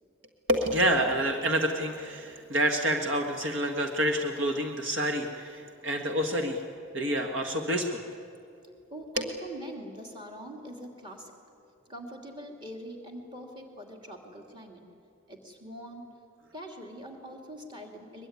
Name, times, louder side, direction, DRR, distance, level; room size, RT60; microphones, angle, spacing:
voice 1, 0.5-6.6 6.9-8.0 9.2-9.3, right 1 dB, 60° right, 4 dB, 1.6 m, -28 dB
voice 2, 8.9-11.3 11.9-14.8 15.3-16.1 16.5-18.3, right 1 dB, 20° right, 2 dB, 2.8 m, -43 dB
22.5 x 22.0 x 9.6 m, 2.5 s
head